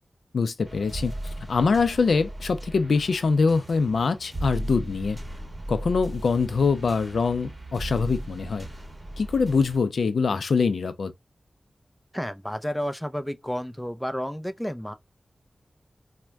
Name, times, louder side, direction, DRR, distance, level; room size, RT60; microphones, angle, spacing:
voice 1, 0.3-1.1 1.5-5.2 5.7-8.7 9.2-11.1, left 4 dB, 85° left, 0.4 m, -24 dB
sound 1, 0.6-9.8, right 1 dB, 30° right, 1.4 m, -37 dB
voice 2, 12.1-14.9, equal, 5° left, 0.5 m, -31 dB
4.3 x 2.1 x 2.2 m
cardioid pair, 55°, 0 cm